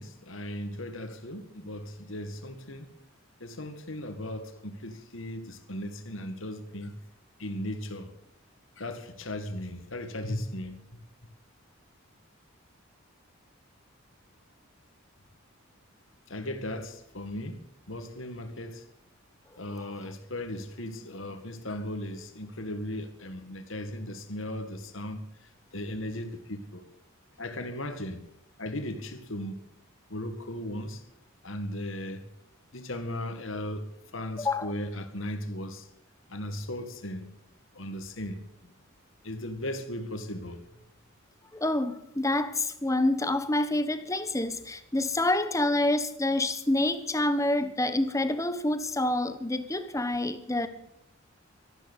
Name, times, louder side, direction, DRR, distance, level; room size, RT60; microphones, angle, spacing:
voice 1, 0.0-2.9 3.4-6.9 7.4-8.1 8.8-10.8 16.3-17.6 17.9-18.8 19.6-25.2 25.7-26.8 27.4-28.3 28.6-29.6 30.1-31.0 31.4-32.2 32.7-35.9 36.3-37.3 37.7-38.7 39.2-40.6, left 1 dB, 65° left, 2.0 m, -37 dB
voice 2, 34.4-34.7 41.5-50.7, left 1 dB, 15° left, 1.1 m, -27 dB
13.5 x 12.0 x 8.1 m
head